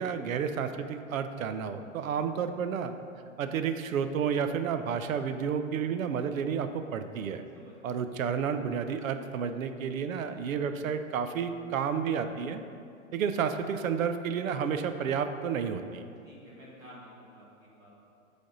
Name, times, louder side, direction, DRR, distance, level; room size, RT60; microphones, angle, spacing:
voice 1, 0.0-2.9 3.4-7.4 7.8-12.6 13.1-16.1, right 7 dB, 75° right, 9 dB, 0.6 m, -31 dB
voice 2, 16.2-18.0, equal, 10° right, -6 dB, 0.6 m, -51 dB
8.4 x 3.5 x 3.9 m, 2.4 s
hypercardioid pair, 155°, 41 cm